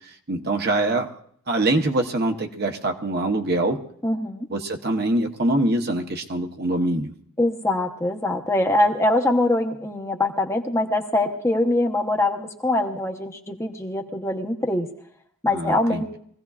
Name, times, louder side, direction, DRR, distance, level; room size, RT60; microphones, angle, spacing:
voice 1, 0.3-1.1 1.5-3.8 4.5-7.1 15.5-16.0, right 2 dB, 45° right, 4 dB, 0.9 m, -24 dB
voice 2, 4.0-4.5 7.4-14.9 15.4-16.1, left 1 dB, 15° left, 2 dB, 0.8 m, -23 dB
23.5 x 16.0 x 2.4 m, 0.63 s
head